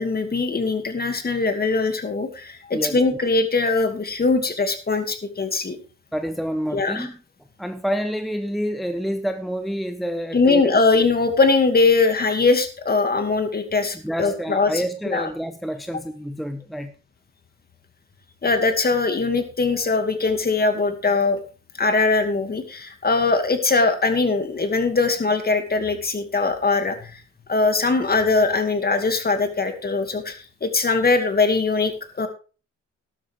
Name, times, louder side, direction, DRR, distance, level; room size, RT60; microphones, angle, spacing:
voice 1, 0.0-5.8 6.7-7.1 10.3-15.3 18.4-21.4 21.8-27.2 27.5-32.3, left 3 dB, 30° left, 2.4 m, -21 dB
voice 2, 6.1-7.2 7.6-10.7 13.9-16.9, equal, ahead, 0.9 m, -28 dB
12.5 x 12.5 x 3.6 m
cardioid pair, 90°, 30 cm